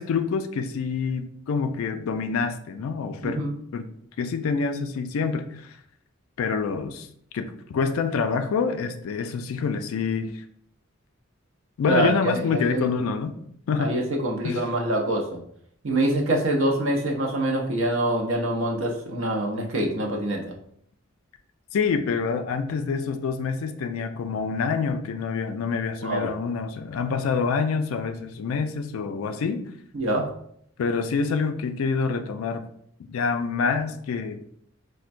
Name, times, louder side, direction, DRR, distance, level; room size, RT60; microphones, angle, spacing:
voice 1, 0.0-3.4 3.7-3.9 4.2-5.7 6.4-7.1 7.3-10.4 11.8-13.3 13.7-13.9 14.4-14.7 21.7-29.6 30.8-32.6 33.0-34.4, left 5 dB, 75° left, 8 dB, 0.3 m, -26 dB
voice 2, 11.9-12.9 13.8-15.4 15.8-20.6 26.0-26.3 29.9-30.3, right 1 dB, 65° right, 1 dB, 0.6 m, -25 dB
4.3 x 2.1 x 2.5 m, 0.68 s
head